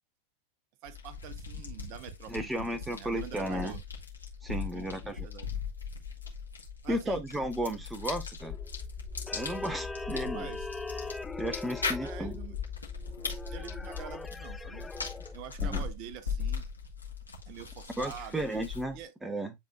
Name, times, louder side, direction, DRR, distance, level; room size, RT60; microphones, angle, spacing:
sound 1, 0.8-19.0, left 5 dB, 80° left, 1.9 m, -39 dB
voice 1, 0.8-3.8 4.7-5.5 6.8-7.2 10.2-10.7 12.0-12.5 13.5-14.8 15.3-16.7 17.5-18.4 18.9-19.1, right 10 dB, 45° right, 0.9 m, -46 dB
voice 2, 2.3-3.7 4.4-5.3 6.9-8.6 9.3-10.5 11.4-12.4 15.6-15.8 18.0-19.5, right 1 dB, 5° right, 0.8 m, -34 dB
sound 2, 8.4-15.4, left 4 dB, 10° left, 0.3 m, -40 dB
10.5 x 3.8 x 2.3 m
figure-of-eight pair, 90°, 0 cm